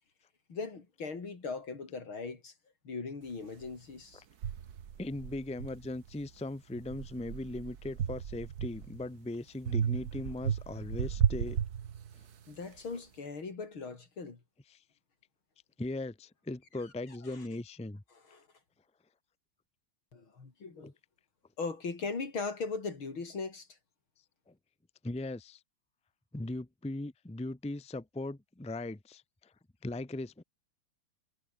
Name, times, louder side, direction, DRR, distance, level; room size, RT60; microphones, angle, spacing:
voice 1, 0.5-2.5 2.8-4.2 12.5-14.4 17.3-17.4 18.3-18.5 20.1-20.9 21.6-23.7, left 4 dB, 85° left, 4.8 m, -39 dB
sound 1, 3.6-3.7 4.4-6.3 6.7-9.1 9.7-12.4, right 8 dB, 55° right, 1.6 m, -34 dB
voice 2, 5.0-11.6 14.7-14.8 15.8-18.0 20.8-20.9 24.5-24.6 25.0-25.6 26.3-29.5 29.8-30.4, left 2 dB, 5° left, 0.7 m, -39 dB
omnidirectional pair, 2.2 m